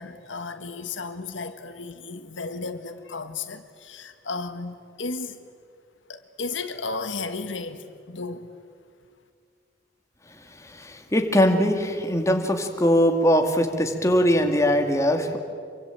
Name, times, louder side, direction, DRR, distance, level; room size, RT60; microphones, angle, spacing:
voice 1, 0.0-5.4 6.1-8.5, left 3 dB, 85° left, 9 dB, 1.6 m, -34 dB
voice 2, 10.5-15.4, equal, 15° left, 4 dB, 2.3 m, -21 dB
26.5 x 24.0 x 9.0 m, 2.2 s
head